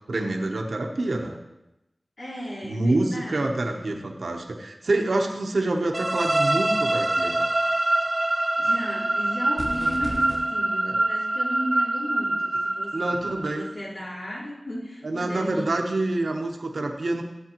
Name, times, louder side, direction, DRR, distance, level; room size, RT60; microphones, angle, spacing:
voice 1, 0.1-1.4 2.6-7.5 10.8-10.9 12.9-13.6 15.0-17.2, right 2 dB, 80° right, 2 dB, 0.8 m, -27 dB
voice 2, 2.2-4.1 8.6-15.7, equal, 90° left, -8 dB, 3.5 m, -35 dB
sound 1, 5.9-13.7, right 2 dB, 35° right, 0.5 m, -25 dB
sound 2, 9.6-10.4, equal, 65° left, 2.6 m, -34 dB
13.5 x 7.7 x 2.9 m, 0.95 s
wide cardioid pair, 65°, 0 cm